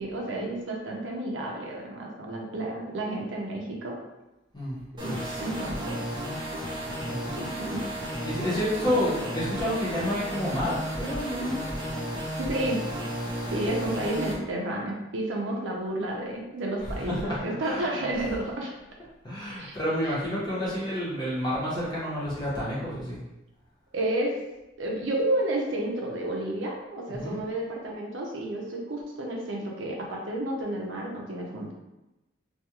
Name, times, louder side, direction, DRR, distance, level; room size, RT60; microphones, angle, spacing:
voice 1, 0.0-4.0 5.0-6.0 7.2-7.8 12.4-12.9 13.5-18.7 19.5-19.8 20.0-20.2 23.9-24.4 24.8-31.7, right 1 dB, 75° right, -1 dB, 0.5 m, -31 dB
voice 2, 4.5-5.4 6.2-6.3 7.1-7.5 8.2-11.6 16.8-17.9 19.2-23.2 27.1-27.4, equal, 20° left, -8 dB, 0.9 m, -30 dB
sound 1, 5.0-14.3, equal, 25° right, 0.5 m, -33 dB
2.3 x 2.3 x 2.9 m, 0.99 s
head